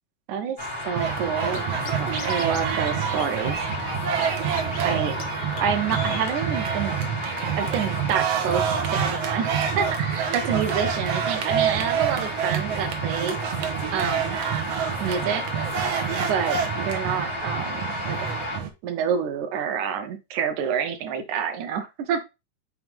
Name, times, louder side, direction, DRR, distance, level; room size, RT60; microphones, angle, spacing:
sound 1, 0.6-18.6, left 1 dB, 25° left, 1.2 m, -33 dB
voice 1, 0.8-3.6 4.8-5.2 5.6-6.9 7.6-13.4 13.9-14.4 15.0-15.4 16.2-18.3 18.8-22.2, right 7 dB, 85° right, 7 dB, 2.4 m, -28 dB
sound 2, 0.9-18.7, right 8 dB, 65° right, 1.8 m, -27 dB
Scratching (performance technique), 1.5-1.6 1.9-2.6 2.9-3.0 3.2-4.3 4.5-4.9 5.2-5.3 5.6-5.7 5.9-6.3, left 8 dB, 70° left, 1.9 m, -36 dB
6.1 x 4.7 x 3.5 m, 0.25 s
omnidirectional pair, 3.4 m